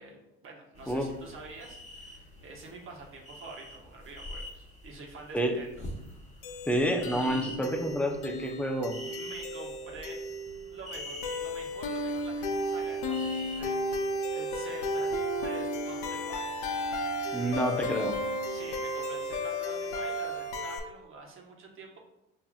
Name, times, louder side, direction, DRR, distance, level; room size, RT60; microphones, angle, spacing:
voice 1, 0.0-5.8 9.0-10.2 10.7-16.6 18.5-22.0, right 3 dB, 45° right, -1 dB, 1.2 m, -47 dB
sound 1, 0.8-13.6, left 1 dB, 25° left, 1.3 m, -46 dB
sound 2, 6.4-20.8, left 1 dB, 70° left, 0.7 m, -34 dB
voice 2, 6.7-9.0 17.3-18.2, equal, 5° left, 3 dB, 0.6 m, -29 dB
5.7 x 2.8 x 2.4 m, 0.89 s
supercardioid pair, 80°, 30 cm